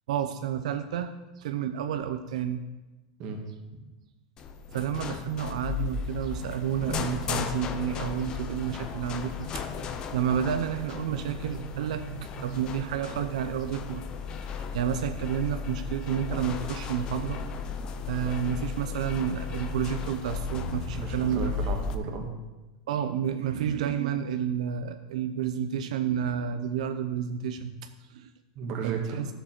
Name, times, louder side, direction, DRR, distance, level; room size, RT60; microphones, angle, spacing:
voice 1, 0.1-1.1 1.4-2.6 4.7-14.0 14.4-17.4 18.1-21.5 22.9-27.7 28.1-28.3 28.8-29.3, right 9 dB, 80° right, 8 dB, 0.6 m, -30 dB
sound 1, 4.4-21.9, left 5 dB, 20° left, 0.5 m, -35 dB
voice 2, 20.9-22.3 28.5-29.2, right 4 dB, 30° right, 2 dB, 1.5 m, -34 dB
12.5 x 6.8 x 4.4 m, 1.1 s
supercardioid pair, 180°, 4 cm